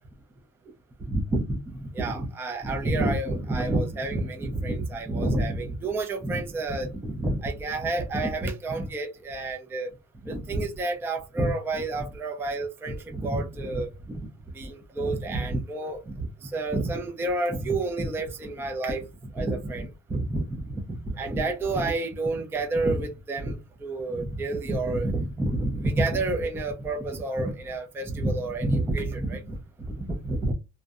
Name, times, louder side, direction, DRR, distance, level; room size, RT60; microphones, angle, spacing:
voice 1, 1.0-9.9 10.2-14.3 14.5-19.1 19.3-29.6 29.9-30.5, right 2 dB, 10° right, 0.3 m, -29 dB
2.6 x 2.0 x 2.3 m
cardioid pair, 130°, 30 cm